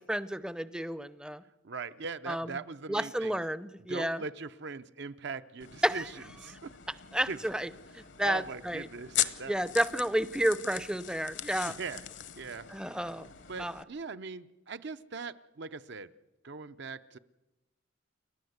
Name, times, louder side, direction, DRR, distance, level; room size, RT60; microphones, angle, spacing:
voice 1, 0.0-1.4 2.3-2.6 2.9-4.2 5.8-6.1 7.1-8.9 9.5-11.8 12.7-13.3 13.6-13.8, equal, 5° right, 15 dB, 0.6 m, -31 dB
voice 2, 1.6-3.4 3.9-6.0 6.4-6.7 7.3-7.4 8.2-9.5 11.6-12.0 12.4-12.7 13.5-16.1 16.4-17.2, right 4 dB, 60° right, 11 dB, 0.7 m, -40 dB
sound 1, 5.6-13.8, left 12 dB, 60° left, 0.9 m, -40 dB
29.5 x 11.5 x 8.0 m, 1.0 s
head